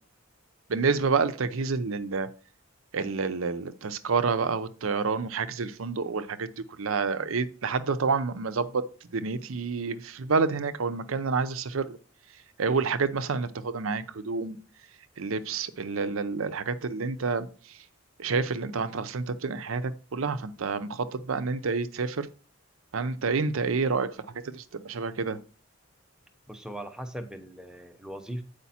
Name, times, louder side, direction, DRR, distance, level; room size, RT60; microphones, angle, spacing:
voice 1, 0.7-2.3 2.9-6.5 6.8-8.8 9.1-12.0 12.6-14.6 15.2-17.5 18.2-22.3 22.9-24.1 24.4-25.4, right 4 dB, 80° right, 0.6 m, -28 dB
voice 2, 26.5-28.4, right 1 dB, 5° right, 0.7 m, -39 dB
8.3 x 5.1 x 4.2 m
head